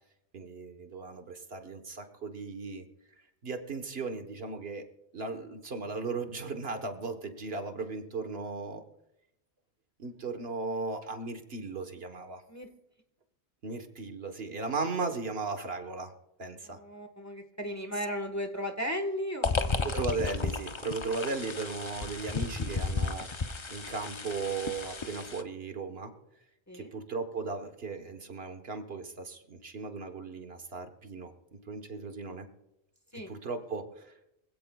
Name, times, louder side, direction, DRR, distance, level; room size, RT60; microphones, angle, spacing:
voice 1, 0.3-2.9 3.2-4.9 5.1-8.8 10.0-12.4 13.6-16.1 16.4-16.8 19.8-26.1 26.7-32.5 33.1-34.1, right 4 dB, 65° right, 6 dB, 1.4 m, -37 dB
voice 2, 16.6-19.9 26.7-26.9 33.1-33.3, equal, 15° left, 5 dB, 1.3 m, -36 dB
sound 1, 19.4-25.4, left 4 dB, 30° left, 0.6 m, -33 dB
24.0 x 16.5 x 2.3 m, 0.85 s
omnidirectional pair, 1.1 m